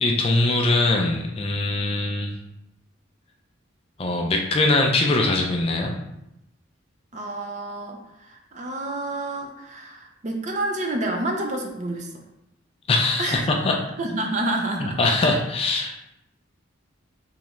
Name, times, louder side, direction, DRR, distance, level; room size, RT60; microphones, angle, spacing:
voice 1, 0.0-2.3 4.0-6.0 12.9-13.8 14.8-16.0, left 2 dB, 30° left, 2 dB, 0.4 m, -22 dB
voice 2, 7.1-8.0 8.3-12.1 13.2-13.5 14.0-15.0, right 2 dB, 35° right, 2 dB, 0.5 m, -28 dB
3.6 x 3.1 x 3.0 m, 0.84 s
head